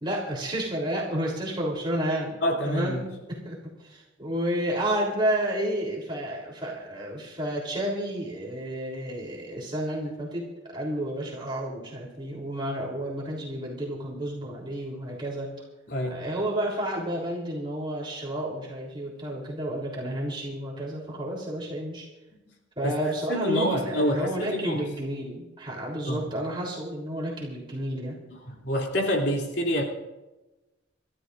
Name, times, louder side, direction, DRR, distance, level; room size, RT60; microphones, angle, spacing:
voice 1, 0.0-2.4 2.6-10.5 10.7-15.5 16.1-22.1 22.8-28.2, right 1 dB, 25° right, -3 dB, 3.4 m, -31 dB
voice 2, 2.4-3.1 15.9-16.2 22.8-23.0 23.3-24.8 26.0-26.3 28.6-29.8, equal, 60° left, 1 dB, 3.1 m, -27 dB
29.0 x 13.5 x 2.6 m, 1.1 s
head